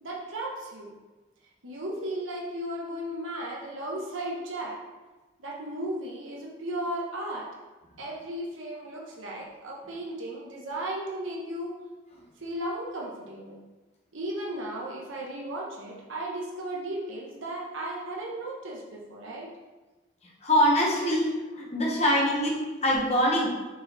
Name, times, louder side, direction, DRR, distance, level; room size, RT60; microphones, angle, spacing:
voice 1, 0.0-0.9 1.6-4.8 5.4-7.5 8.0-11.8 12.4-13.6 14.1-19.5 21.0-21.2, right 1 dB, 90° right, -2 dB, 1.2 m, -35 dB
voice 2, 20.4-21.3 21.5-22.5 22.8-23.5, equal, 35° left, -3 dB, 1.3 m, -23 dB
6.3 x 4.4 x 4.1 m, 1.2 s
head